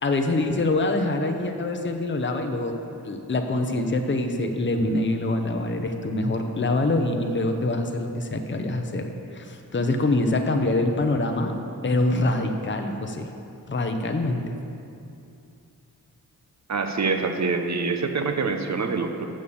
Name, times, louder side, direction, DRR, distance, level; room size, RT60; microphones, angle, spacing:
voice 1, 0.0-2.8 3.0-13.3 13.7-14.4, left 2 dB, 30° left, 4 dB, 0.8 m, -25 dB
voice 2, 16.7-19.2, right 4 dB, 45° right, 6 dB, 0.8 m, -25 dB
7.1 x 6.3 x 6.9 m, 2.6 s
cardioid pair, 60°, 38 cm